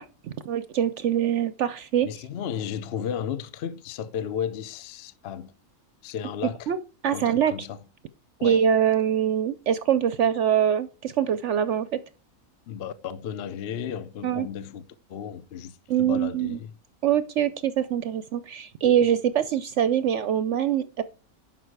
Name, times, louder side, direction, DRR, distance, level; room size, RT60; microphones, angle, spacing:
voice 1, 0.2-2.1 6.7-6.8 7.0-7.5 8.4-12.0 14.2-14.5 15.9-16.6 17.0-21.0, right 9 dB, 65° right, 0.8 m, -24 dB
voice 2, 2.0-5.5 6.0-6.7 7.1-7.8 8.4-8.6 12.7-14.8 15.1-16.7, left 8 dB, 55° left, 0.7 m, -34 dB
11.0 x 5.7 x 4.6 m
omnidirectional pair, 1.5 m